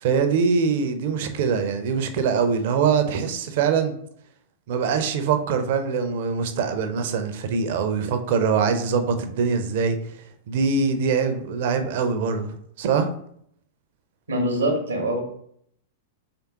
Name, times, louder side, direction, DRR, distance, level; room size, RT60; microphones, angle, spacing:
voice 1, 0.0-3.9 4.7-10.0 10.5-13.1, right 5 dB, 55° right, 0.5 m, -23 dB
voice 2, 14.3-15.2, right 1 dB, 80° right, 0.8 m, -23 dB
3.4 x 3.3 x 2.9 m
figure-of-eight pair, 95°, 0 cm